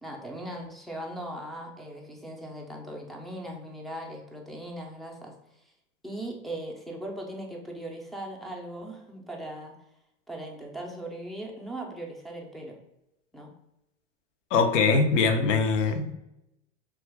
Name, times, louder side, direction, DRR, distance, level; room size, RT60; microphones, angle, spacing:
voice 1, 0.0-5.6 6.0-9.7 10.3-12.8 13.3-13.5, right 1 dB, ahead, 0 dB, 0.3 m, -39 dB
voice 2, 14.5-16.1, left 4 dB, 80° left, 7 dB, 0.6 m, -22 dB
2.8 x 2.4 x 3.2 m, 0.87 s
hypercardioid pair, 105°, 37 cm